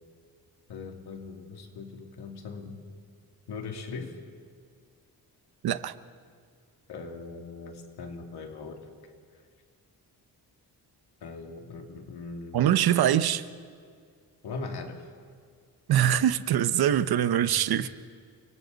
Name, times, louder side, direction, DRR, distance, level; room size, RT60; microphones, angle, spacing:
voice 1, 0.7-2.8 3.5-4.2 6.9-9.4 11.2-12.7 14.4-15.1 17.4-17.9, left 4 dB, 75° left, 3 dB, 2.5 m, -40 dB
voice 2, 5.6-5.9 12.5-13.4 15.9-17.9, right 10 dB, 70° right, 13 dB, 0.9 m, -23 dB
29.5 x 24.5 x 4.0 m, 2.1 s
wide cardioid pair, 150°, 39 cm